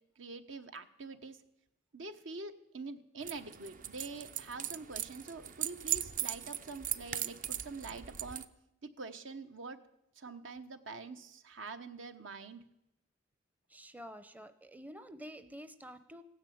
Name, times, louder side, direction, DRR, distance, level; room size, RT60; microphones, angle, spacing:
voice 1, 0.2-1.4 1.9-8.5 8.8-9.8 10.1-12.6, right 3 dB, 70° right, 9 dB, 1.1 m, -45 dB
sound 1, 3.2-8.4, right 10 dB, 45° right, 0.6 m, -39 dB
voice 2, 13.7-16.2, equal, 10° right, 11 dB, 0.6 m, -49 dB
16.0 x 10.0 x 8.6 m, 0.84 s
head